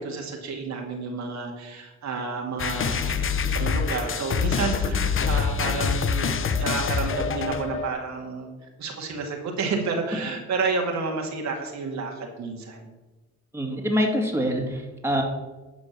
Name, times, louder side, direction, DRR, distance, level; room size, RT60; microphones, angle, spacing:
voice 1, 0.0-8.5 8.8-12.9, right 4 dB, 65° right, 1 dB, 2.2 m, -30 dB
sound 1, 2.6-7.9, left 6 dB, 45° left, 0.9 m, -25 dB
voice 2, 13.5-15.2, equal, 10° right, 0 dB, 2.2 m, -25 dB
11.0 x 5.2 x 7.2 m, 1.1 s
cardioid pair, 90°, 30 cm